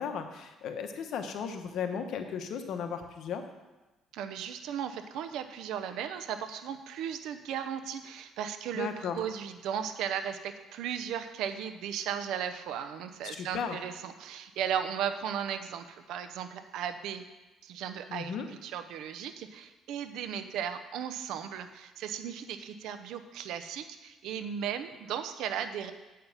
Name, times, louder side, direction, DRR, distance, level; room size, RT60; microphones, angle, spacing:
voice 1, 0.0-3.4 8.7-9.2 13.2-13.8 18.1-18.5, left 7 dB, 65° left, 6 dB, 1.1 m, -35 dB
voice 2, 4.1-17.2 17.6-25.9, right 8 dB, 80° right, 9 dB, 0.7 m, -36 dB
8.5 x 5.7 x 7.3 m, 1.1 s
cardioid pair, 110°, 0 cm